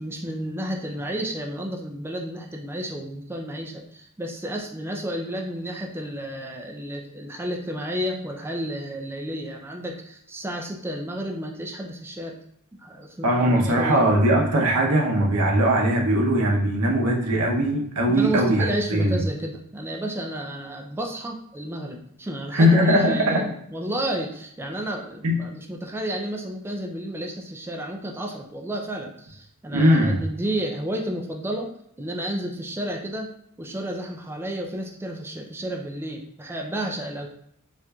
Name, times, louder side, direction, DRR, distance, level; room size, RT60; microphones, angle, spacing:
voice 1, 0.0-12.4 12.8-14.1 18.1-31.7 32.0-37.3, right 1 dB, 10° right, 1 dB, 0.3 m, -31 dB
voice 2, 13.2-19.2 22.5-23.4 25.2-25.3 29.7-30.2, equal, 75° right, 0 dB, 0.8 m, -20 dB
4.3 x 2.5 x 2.3 m, 0.72 s
head